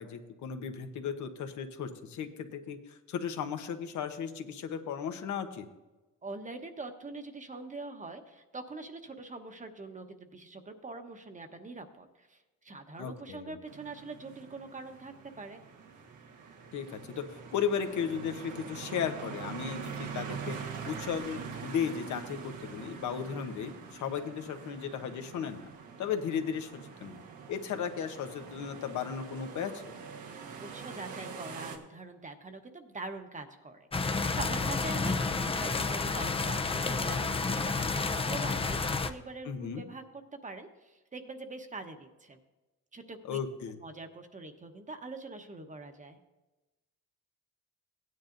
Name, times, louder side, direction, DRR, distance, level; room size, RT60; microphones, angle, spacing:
voice 1, 0.0-5.6 13.0-13.5 16.7-17.2 17.5-20.6 20.8-25.6 26.0-27.2 27.5-29.7 39.4-39.8 43.2-43.8, left 7 dB, 75° left, 6 dB, 1.1 m, -35 dB
voice 2, 6.2-15.6 30.3-42.4 42.9-43.4 43.8-46.2, right 3 dB, 25° right, 6 dB, 1.1 m, -44 dB
sound 1, 13.7-31.8, right 6 dB, 85° right, 1.4 m, -44 dB
sound 2, 33.9-39.1, left 4 dB, 20° left, 0.6 m, -30 dB
16.0 x 9.6 x 2.6 m, 1.1 s
cardioid pair, 90°, 30 cm